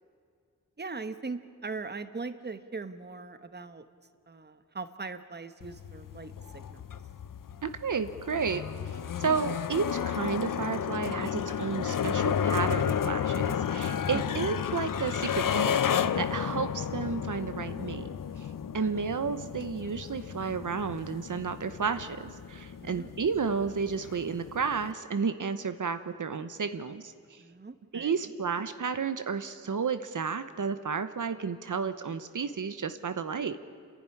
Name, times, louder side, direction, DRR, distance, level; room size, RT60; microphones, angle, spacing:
voice 1, 0.8-3.8 4.3-6.8 14.1-14.2 18.7-19.1 22.8-23.1 27.4-28.1, right 4 dB, 30° right, 11 dB, 1.1 m, -40 dB
sound 1, 5.6-24.9, left 8 dB, 90° left, 0.7 m, -32 dB
voice 2, 7.6-8.7 9.2-18.1 18.4-18.5 18.7-27.4 27.9-33.6, right 5 dB, 70° right, 10 dB, 1.0 m, -32 dB
29.5 x 11.5 x 9.9 m, 2.2 s
wide cardioid pair, 75°, 32 cm